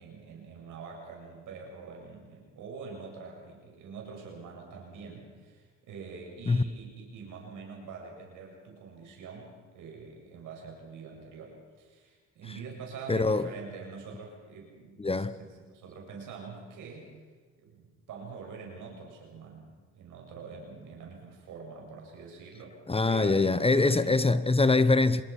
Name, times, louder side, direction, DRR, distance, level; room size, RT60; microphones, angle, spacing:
voice 1, 0.0-17.1 17.6-22.8 23.1-24.2, right 5 dB, 85° right, 7.5 m, -45 dB
voice 2, 13.1-13.5 15.0-15.3 22.9-25.2, left 3 dB, 20° left, 1.0 m, -23 dB
26.0 x 21.0 x 6.0 m
cardioid pair, 90°, 30 cm